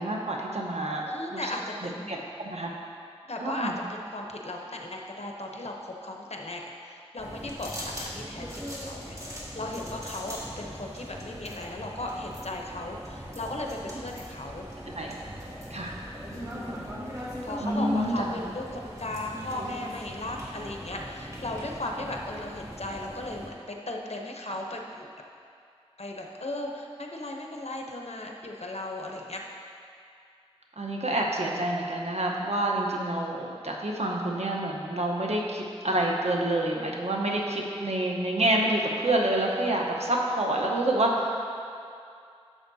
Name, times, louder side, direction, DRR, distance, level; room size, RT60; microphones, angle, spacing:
voice 1, 0.0-1.0 1.3-1.4 2.1-2.7 3.4-3.8 15.0-15.1 15.7-16.0 17.6-18.1 24.5-24.6 30.8-41.3, right 1 dB, 80° right, -1 dB, 1.0 m, -28 dB
voice 2, 1.0-2.2 3.3-14.7 16.2-16.8 17.4-25.1 26.0-29.4, left 1 dB, 75° left, 1 dB, 0.8 m, -36 dB
sound 1, 7.2-23.5, equal, 30° right, 1.8 m, -40 dB
11.0 x 7.3 x 2.8 m, 2.4 s
wide cardioid pair, 45°, 11 cm